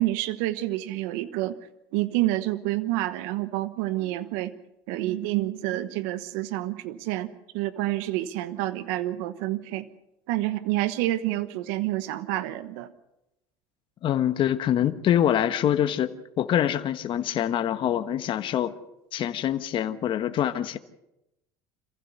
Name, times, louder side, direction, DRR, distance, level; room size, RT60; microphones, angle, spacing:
voice 1, 0.0-1.6 1.9-4.5 4.9-9.9 10.3-12.9, right 16 dB, 80° right, 13 dB, 1.2 m, -28 dB
voice 2, 14.0-18.7 19.1-20.8, left 10 dB, 45° left, 9 dB, 1.4 m, -25 dB
27.0 x 15.5 x 6.8 m, 0.89 s
supercardioid pair, 110°, 11 cm